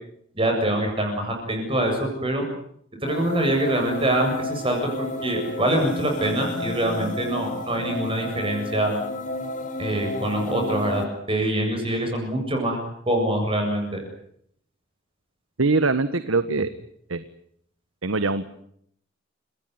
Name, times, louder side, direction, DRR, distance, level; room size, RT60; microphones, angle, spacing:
voice 1, 0.3-2.5 3.0-9.0 9.8-12.8 13.1-14.0, right 1 dB, 25° right, 2 dB, 7.5 m, -24 dB
sound 1, 3.0-11.0, left 2 dB, 40° left, 4.3 m, -32 dB
voice 2, 15.6-16.7 17.1-17.2 18.0-18.5, right 3 dB, 90° right, 12 dB, 1.4 m, -22 dB
29.0 x 18.5 x 9.7 m, 0.70 s
head